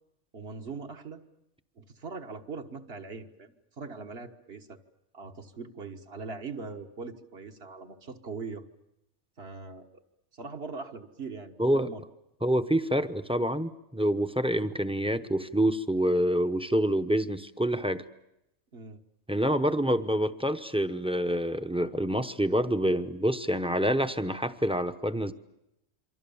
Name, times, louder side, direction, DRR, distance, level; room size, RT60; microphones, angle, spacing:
voice 1, 0.3-1.2 1.8-4.8 5.1-8.6 9.4-10.0 10.3-12.0 18.7-19.0, right 4 dB, 60° right, 5 dB, 1.6 m, -41 dB
voice 2, 11.6-11.9 12.4-18.0 19.3-25.3, equal, 5° right, 11 dB, 0.7 m, -27 dB
28.0 x 24.0 x 7.1 m, 0.85 s
omnidirectional pair, 1.2 m